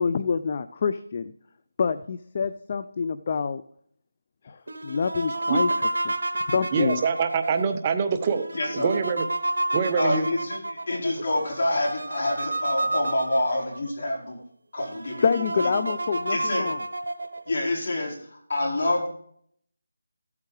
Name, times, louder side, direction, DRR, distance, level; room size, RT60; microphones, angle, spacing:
voice 1, 0.0-1.3 1.8-3.6 4.4-5.7 6.1-6.2 6.5-7.1 15.2-16.8, left 5 dB, 35° left, 11 dB, 0.5 m, -26 dB
sound 1, 4.7-13.9 14.4-14.5 14.8-17.5, right 2 dB, 85° right, 0.9 m, -30 dB
voice 2, 6.7-9.3 9.7-10.3, right 6 dB, 25° right, 8 dB, 0.6 m, -25 dB
voice 3, 8.5-8.9 10.0-14.4 14.7-15.8 16.3-16.7 17.5-19.1, left 1 dB, 50° left, -3 dB, 4.5 m, -27 dB
14.5 x 8.3 x 3.3 m, 0.64 s
figure-of-eight pair, 170°, 0 cm